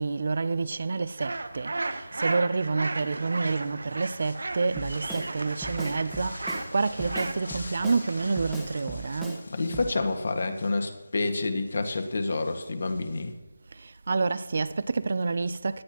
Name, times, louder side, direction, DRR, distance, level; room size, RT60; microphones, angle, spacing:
voice 1, 0.0-9.4 14.1-15.8, right 4 dB, 50° right, 0.5 m, -28 dB
sound 1, 0.6-13.3, left 2 dB, 85° left, 2.2 m, -49 dB
sound 2, 1.2-9.2, right 2 dB, 80° right, 1.0 m, -35 dB
Drum kit, 4.8-5.3 5.6-6.7 7.0-8.0 8.4-9.4 9.7-9.9, right 1 dB, ahead, 1.1 m, -38 dB
voice 2, 9.5-13.3, left 3 dB, 60° left, 1.8 m, -28 dB
18.0 x 11.0 x 3.0 m
figure-of-eight pair, 170°, 0 cm